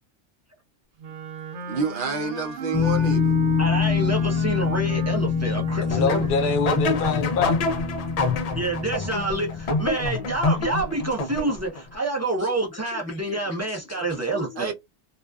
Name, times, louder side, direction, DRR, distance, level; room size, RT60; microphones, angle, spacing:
Wind instrument woodwind instrument, 1.0-6.3, right 5 dB, 80° right, 1.0 m, -35 dB
voice 1, 1.7-3.3 9.0-9.1 14.6-14.7, right 3 dB, 55° right, 0.7 m, -28 dB
sound 1, 2.7-9.9, left 7 dB, 20° left, 0.6 m, -26 dB
voice 2, 3.6-6.5 8.5-14.7, right 2 dB, 25° right, 0.3 m, -28 dB
voice 3, 5.8-7.6 12.9-13.4 13.9-14.0 14.3-14.5, left 4 dB, 60° left, 0.7 m, -26 dB
sound 2, 5.9-11.8, left 3 dB, 85° left, 0.3 m, -27 dB
2.4 x 2.3 x 2.2 m
omnidirectional pair, 1.2 m